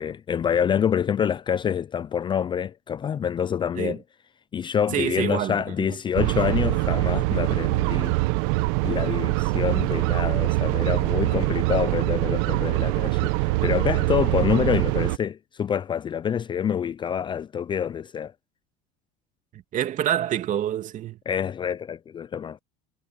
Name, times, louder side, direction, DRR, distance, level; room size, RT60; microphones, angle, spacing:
voice 1, 0.0-4.0 4.5-8.1 8.8-18.3 21.3-22.6, left 8 dB, 25° left, 0.5 m, -26 dB
voice 2, 4.9-6.0 19.5-21.2, right 11 dB, 45° right, 2.6 m, -27 dB
sound 1, 6.2-15.2, right 21 dB, 75° right, 1.1 m, -23 dB
supercardioid pair, 115°, 19 cm